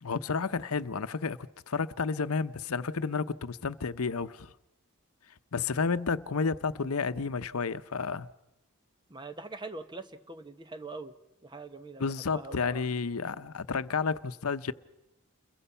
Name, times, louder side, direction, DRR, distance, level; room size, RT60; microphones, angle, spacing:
voice 1, 0.0-1.4 1.7-4.5 5.5-8.3 12.0-14.7, left 5 dB, 85° left, 0.8 m, -31 dB
voice 2, 9.1-11.1 11.4-12.8, right 3 dB, 20° right, 1.1 m, -43 dB
30.0 x 22.0 x 5.6 m
head